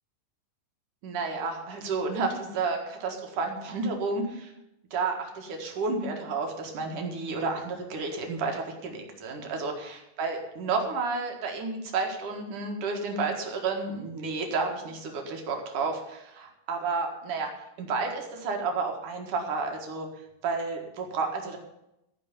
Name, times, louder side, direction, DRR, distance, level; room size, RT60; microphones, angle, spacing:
voice 1, 1.0-4.5 4.9-17.5 17.8-20.1 20.4-21.6, right 4 dB, 55° right, 2 dB, 2.4 m, -31 dB
15.5 x 5.3 x 9.7 m, 0.87 s
omnidirectional pair, 5.8 m